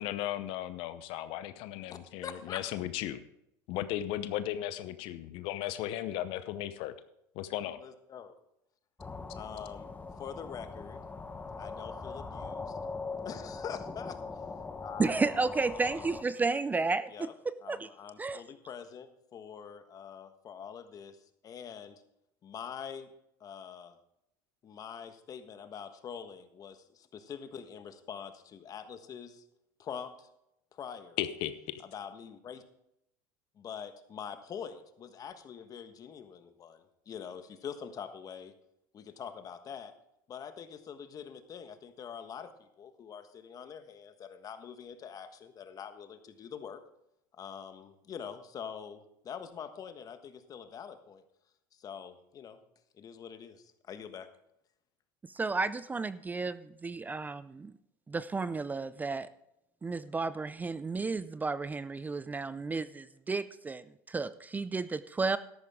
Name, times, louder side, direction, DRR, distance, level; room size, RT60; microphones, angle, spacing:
voice 1, 0.0-3.2 3.7-6.9 7.4-7.8 31.2-31.8, left 13 dB, 65° left, 12 dB, 0.8 m, -36 dB
voice 2, 1.9-2.6 7.8-8.3 9.3-11.0 11.6-12.8 13.2-14.2 14.8-15.6 17.1-17.3 17.6-21.2 21.4-22.0 22.4-23.1 23.4-24.0 24.6-29.4 29.8-30.3 30.7-31.2 31.8-32.6 33.6-38.5 38.9-39.9 40.3-46.8 47.3-51.2 51.7-52.6 53.0-54.3, left 7 dB, 40° left, 9 dB, 1.4 m, -44 dB
sound 1, 9.0-16.2, left 4 dB, 15° left, 1.0 m, -41 dB
voice 3, 15.0-17.3 17.7-17.9 18.2-18.4 55.3-57.7 58.1-59.3 59.8-65.4, right 4 dB, 15° right, 15 dB, 0.5 m, -32 dB
13.0 x 11.0 x 3.7 m, 0.79 s
supercardioid pair, 100°, 10 cm